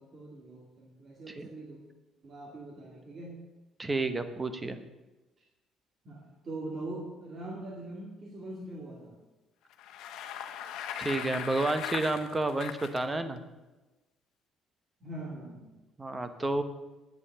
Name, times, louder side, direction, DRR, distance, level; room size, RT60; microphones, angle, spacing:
voice 1, 0.0-1.8 2.2-3.5 6.0-9.2 15.0-15.8, right 2 dB, 35° right, -2 dB, 2.1 m, -42 dB
voice 2, 3.8-4.8 11.0-13.4 16.0-16.6, right 2 dB, 15° right, 10 dB, 0.9 m, -30 dB
Bicycle, 9.7-13.0, left 9 dB, 75° left, 1.1 m, -39 dB
9.5 x 8.4 x 8.5 m, 1.1 s
cardioid pair, 165°, 0 cm